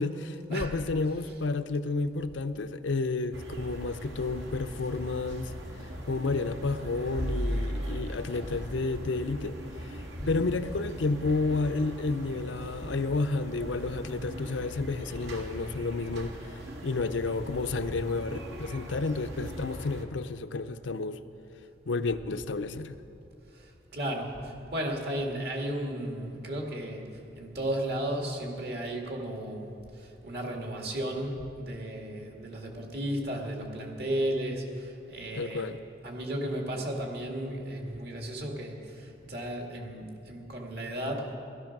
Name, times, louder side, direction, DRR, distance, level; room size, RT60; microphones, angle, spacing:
voice 1, 0.0-5.5 6.1-9.6 9.8-10.0 10.3-21.2 21.9-23.0 35.3-35.8, left 3 dB, 85° left, 10 dB, 0.6 m, -31 dB
sound 1, 3.3-20.0, equal, 75° right, 1.8 m, -39 dB
voice 2, 10.1-10.4 23.5-27.1 27.3-35.7 36.0-41.3, right 1 dB, 55° right, 1 dB, 2.2 m, -34 dB
16.0 x 14.0 x 6.0 m, 2.7 s
head